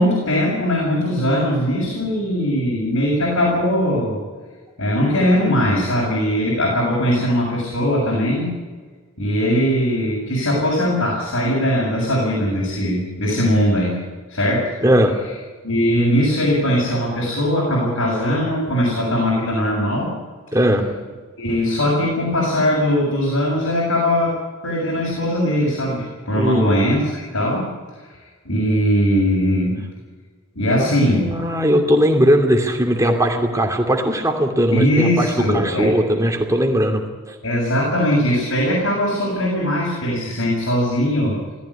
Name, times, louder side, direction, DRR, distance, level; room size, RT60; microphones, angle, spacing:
voice 1, 0.0-4.2 4.8-8.5 9.2-14.0 14.3-14.7 15.6-20.1 21.4-24.4 24.6-27.7 28.5-29.8 30.6-31.3 34.7-35.9 37.4-41.4, equal, 70° left, -4 dB, 7.0 m, -20 dB
voice 2, 14.8-15.1 20.5-20.8 26.3-26.7 30.8-37.4, equal, 15° right, 2 dB, 2.7 m, -18 dB
18.5 x 14.5 x 9.9 m, 1.4 s
head